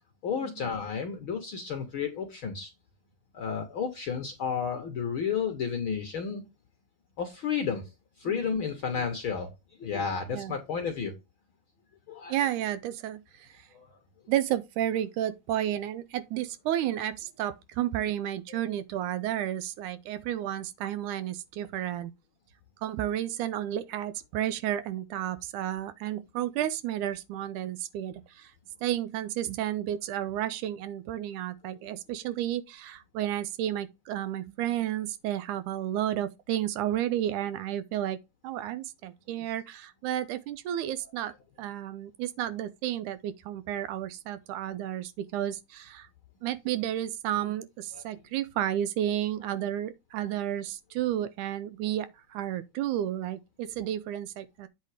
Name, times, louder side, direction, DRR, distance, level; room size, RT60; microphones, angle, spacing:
voice 1, 0.2-2.7 3.3-6.4 7.2-7.9 8.2-9.5 9.8-11.1 12.1-12.4 13.7-13.9 18.5-18.6 47.9-48.0, left 6 dB, 60° left, 1.4 m, -32 dB
voice 2, 12.3-13.7 14.3-22.1 22.8-28.5 28.8-38.2 38.4-41.3 41.6-46.1 46.4-54.7, right 12 dB, 80° right, 2.0 m, -32 dB
8.3 x 3.9 x 4.9 m
omnidirectional pair, 3.8 m